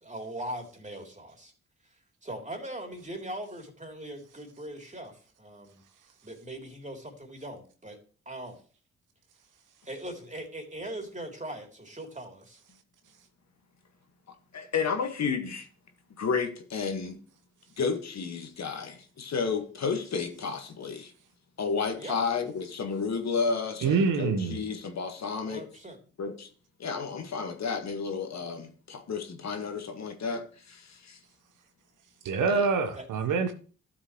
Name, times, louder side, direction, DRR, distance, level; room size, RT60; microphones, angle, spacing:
voice 1, 0.0-1.5 1.9-5.8 6.2-8.0 8.3-8.6 9.9-12.6 22.0-22.2 25.5-26.0 33.0-33.1, right 1 dB, 20° right, 3.4 m, -40 dB
voice 2, 14.5-15.7 16.2-17.2 17.8-21.1 21.6-25.6 26.2-26.5 26.8-31.2 32.5-32.7, left 5 dB, 55° left, 1.8 m, -32 dB
voice 3, 23.8-24.6 32.2-33.5, right 5 dB, 70° right, 1.2 m, -25 dB
12.5 x 7.3 x 3.2 m
hypercardioid pair, 40°, 32 cm